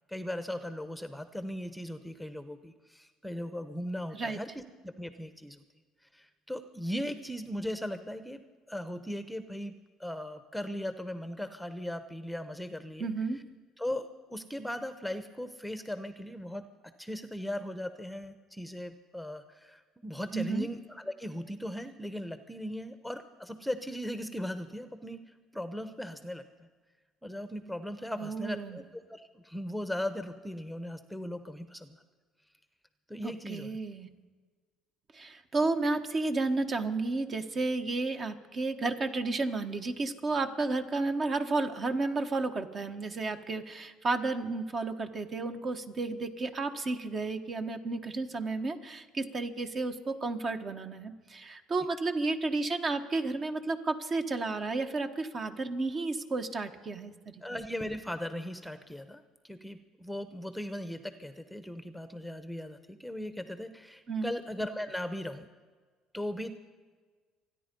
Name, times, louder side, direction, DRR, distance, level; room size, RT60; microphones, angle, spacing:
voice 1, 0.1-5.6 6.1-8.4 8.7-9.7 10.0-13.1 13.8-16.6 17.0-25.2 25.5-26.7 27.2-32.0 33.1-33.7 57.4-65.5 66.1-66.5, left 1 dB, ahead, 10 dB, 0.9 m, -38 dB
voice 2, 13.0-13.4 20.3-20.7 28.2-28.8 33.2-34.1 35.1-57.4 64.1-64.3, right 3 dB, 40° right, 7 dB, 1.4 m, -32 dB
26.5 x 10.0 x 5.4 m, 1.5 s
cardioid pair, 100°, 0 cm